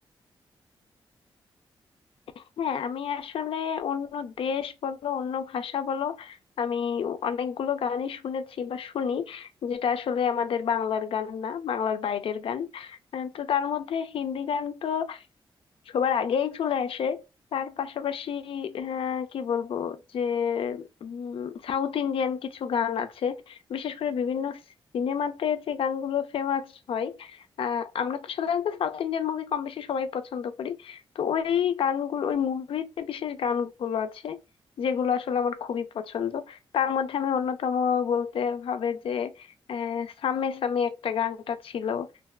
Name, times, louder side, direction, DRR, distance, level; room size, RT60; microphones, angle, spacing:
voice 1, 2.4-15.2 15.9-17.2 17.5-24.6 24.9-34.4 34.8-42.1, left 7 dB, 75° left, 0.5 m, -29 dB
3.4 x 2.2 x 2.3 m
cardioid pair, 85°, 9 cm